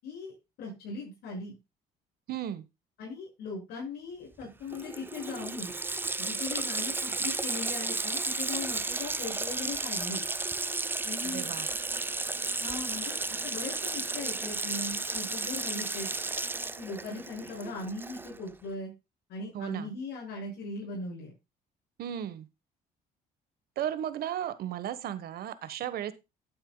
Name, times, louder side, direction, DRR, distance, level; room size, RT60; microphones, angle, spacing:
voice 1, 0.0-1.6 3.0-5.7 6.2-10.2 11.0-11.5 12.6-16.1 16.8-18.9 19.3-21.3, left 3 dB, 75° left, -3 dB, 6.3 m, -39 dB
voice 2, 2.3-2.6 11.2-11.7 19.5-19.9 22.0-22.5 23.8-26.1, right 10 dB, 65° right, 14 dB, 1.4 m, -35 dB
Water tap faucet, 4.4-4.5 4.7-18.5, right 3 dB, 10° right, 0.6 m, -33 dB
11.5 x 9.1 x 2.3 m, 0.24 s
cardioid pair, 110°, 17 cm